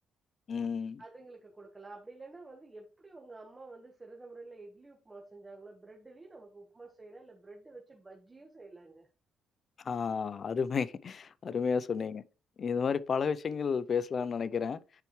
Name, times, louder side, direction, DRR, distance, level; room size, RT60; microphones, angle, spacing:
voice 1, 0.5-1.0 9.8-12.2 12.6-14.8, left 6 dB, 50° left, 0.5 m, -32 dB
voice 2, 1.0-9.1 11.4-11.7, right 3 dB, 20° right, 1.4 m, -50 dB
10.0 x 4.5 x 3.2 m
cardioid pair, 90°, 0 cm